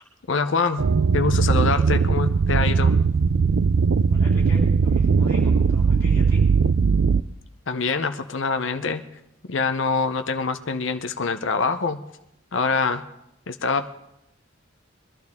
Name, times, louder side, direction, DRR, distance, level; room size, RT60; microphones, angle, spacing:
voice 1, 0.3-0.9 1.1-2.9 7.7-9.1 9.5-12.0 12.5-13.0 13.5-13.9, left 4 dB, 65° left, 8 dB, 0.7 m, -24 dB
sound 1, 0.8-7.2, right 5 dB, 70° right, 0.4 m, -19 dB
voice 2, 4.1-6.4, left 1 dB, 15° left, -4 dB, 5.9 m, -38 dB
22.0 x 12.0 x 3.6 m, 0.82 s
head